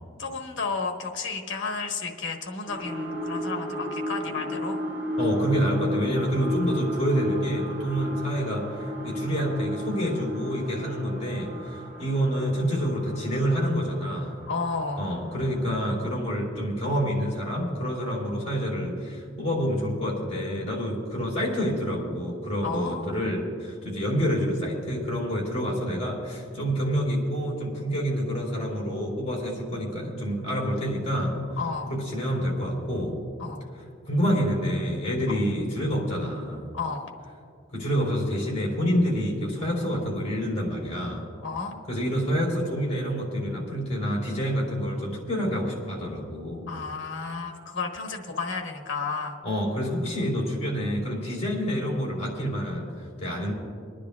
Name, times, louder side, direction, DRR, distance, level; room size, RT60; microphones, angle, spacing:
voice 1, 0.2-4.8 14.5-15.1 22.6-23.2 31.6-31.9 33.4-33.6 35.3-35.4 36.7-37.1 41.4-41.8 46.7-49.4, left 4 dB, 65° left, 2 dB, 1.3 m, -32 dB
sound 1, 2.7-15.8 16.3-16.4, equal, 5° right, 2.4 m, -34 dB
voice 2, 5.2-14.3 15.0-31.4 31.9-33.2 34.0-36.7 37.7-41.2 41.9-46.7 49.4-53.5, equal, 35° left, -2 dB, 3.4 m, -27 dB
28.5 x 10.0 x 2.4 m, 2.3 s
head